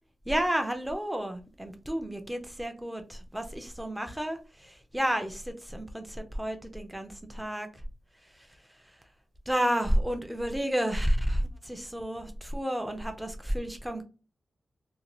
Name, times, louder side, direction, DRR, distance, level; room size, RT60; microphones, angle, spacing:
voice 1, 0.3-7.8 8.3-8.5 8.8-9.0 9.5-14.0, equal, 5° right, 0.5 m, -31 dB
2.7 x 2.2 x 3.0 m
wide cardioid pair, 110°, 0 cm